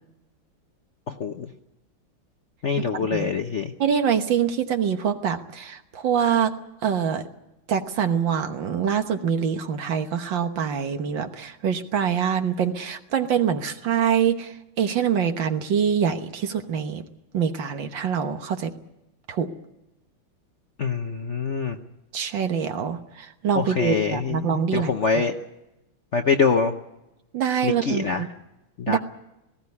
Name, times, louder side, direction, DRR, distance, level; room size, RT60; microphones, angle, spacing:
voice 1, 1.1-1.5 2.6-3.7 20.8-21.8 23.6-25.3 26.1-26.7 27.6-28.2 28.8-29.0, left 5 dB, 50° left, 5 dB, 0.9 m, -24 dB
voice 2, 2.9-3.3 3.8-6.5 6.8-7.2 7.7-17.0 17.3-18.7 19.3-19.5 22.1-25.2 27.3-28.1 28.9-29.0, right 7 dB, 65° right, 8 dB, 1.9 m, -25 dB
19.0 x 16.5 x 9.7 m, 0.91 s
omnidirectional pair, 2.3 m